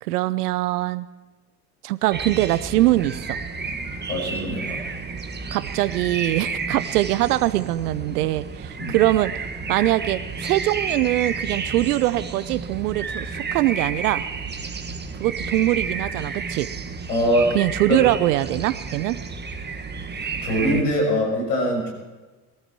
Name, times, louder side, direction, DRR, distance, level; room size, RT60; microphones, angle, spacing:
voice 1, 0.0-1.1 1.8-3.4 5.5-9.3 9.7-14.2 15.2-16.7 17.5-19.2, right 16 dB, 75° right, 16 dB, 0.9 m, -22 dB
sound 1, 2.1-20.8, right 4 dB, 20° right, 1.7 m, -31 dB
voice 2, 4.1-4.8 8.8-9.0 17.1-17.5 17.9-18.0 20.4-21.9, equal, 80° left, 1 dB, 6.6 m, -22 dB
22.0 x 13.0 x 4.5 m, 1.3 s
hypercardioid pair, 70°, 47 cm